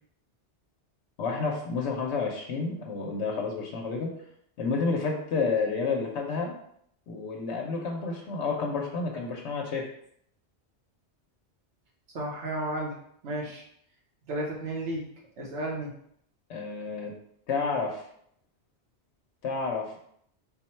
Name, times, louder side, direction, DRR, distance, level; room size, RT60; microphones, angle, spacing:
voice 1, 1.2-4.1 4.6-6.6 7.1-9.9 16.5-17.1 17.5-18.0 19.4-19.9, left 4 dB, 80° left, 0 dB, 0.9 m, -30 dB
voice 2, 12.1-13.0 13.2-13.6 14.3-15.0 15.4-15.9, right 1 dB, 75° right, -2 dB, 1.2 m, -32 dB
3.8 x 2.1 x 4.2 m, 0.69 s
omnidirectional pair, 1.2 m